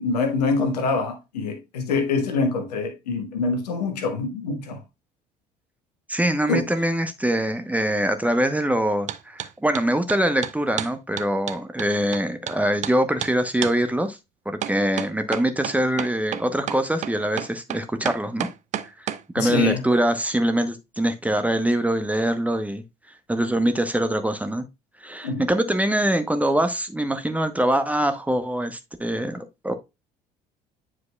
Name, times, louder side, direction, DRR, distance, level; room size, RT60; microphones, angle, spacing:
voice 1, 0.0-4.8 6.5-6.7 19.4-19.8 25.2-25.5, left 3 dB, 70° left, 1.3 m, -25 dB
voice 2, 6.1-14.2 14.5-18.5 19.0-19.1 19.3-22.8 23.3-24.7 25.0-29.7, right 1 dB, 5° right, 0.8 m, -23 dB
sound 1, 9.1-9.5 9.8-12.6 12.8-13.0 13.2-13.3 13.6-13.8 14.6-19.2, right 10 dB, 35° right, 0.5 m, -30 dB
9.4 x 4.9 x 2.3 m
figure-of-eight pair, 55°, 21 cm